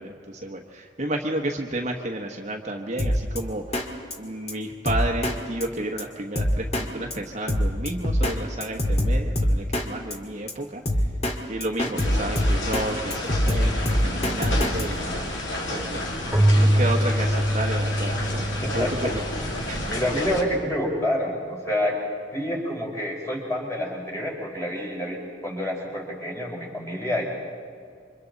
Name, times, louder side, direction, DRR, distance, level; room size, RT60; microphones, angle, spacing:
voice 1, 0.0-3.6 4.2-10.8 11.5-15.2 15.7-16.0 16.5-18.5 18.7-19.2 19.7-19.8, right 1 dB, 35° right, 2 dB, 1.2 m, -31 dB
Drum kit, 3.0-3.4 3.7-3.9 4.1-4.2 4.5-4.6 4.9-5.4 5.6-5.7 6.0-6.1 6.4-6.9 7.1-7.2 7.5-8.4 8.6-9.9 10.1-10.2 10.5-10.6 10.9-11.4 11.6-12.9 13.1-14.8, equal, 35° left, 2.0 m, -23 dB
sound 1, 12.0-20.4, left 1 dB, 70° left, 3.1 m, -31 dB
Keyboard (musical), 16.3-19.8, equal, 5° right, 2.9 m, -23 dB
voice 2, 18.6-19.1 19.9-22.0 22.3-27.2, left 1 dB, 15° left, -2 dB, 4.7 m, -28 dB
28.5 x 25.0 x 4.1 m, 2.2 s
head